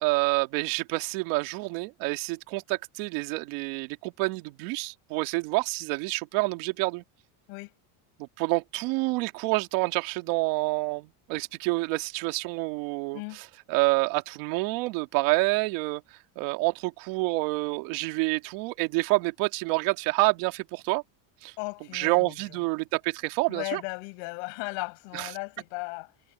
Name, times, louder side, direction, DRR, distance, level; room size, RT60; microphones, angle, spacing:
voice 1, 0.0-7.0 8.2-16.0 16.4-21.0 21.4-21.5 21.9-23.8 25.1-25.3, right 24 dB, 75° right, 2.2 m, -28 dB
voice 2, 21.6-22.3 23.5-26.1, left 33 dB, 75° left, 6.6 m, -36 dB
cardioid pair, 145°, 50 cm